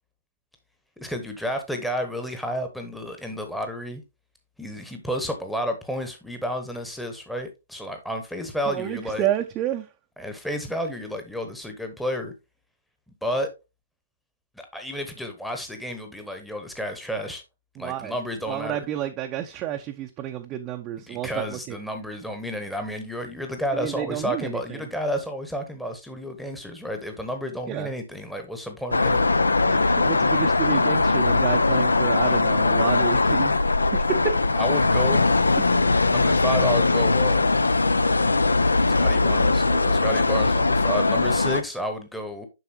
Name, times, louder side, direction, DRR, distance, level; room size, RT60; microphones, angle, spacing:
voice 1, 1.0-4.0 4.6-9.3 10.2-12.3 13.2-13.5 14.6-17.4 17.8-18.9 21.1-29.4 34.6-35.3 36.1-37.4 38.9-42.5, equal, ahead, 1.0 m, -31 dB
voice 2, 8.7-9.9 17.8-18.2 18.5-21.8 23.7-24.8 27.7-27.9 29.7-33.5 33.9-34.3, right 11 dB, 25° right, 0.6 m, -30 dB
sound 1, 28.9-41.6, left 3 dB, 80° left, 0.5 m, -20 dB
7.9 x 5.7 x 2.7 m
figure-of-eight pair, 130°, 0 cm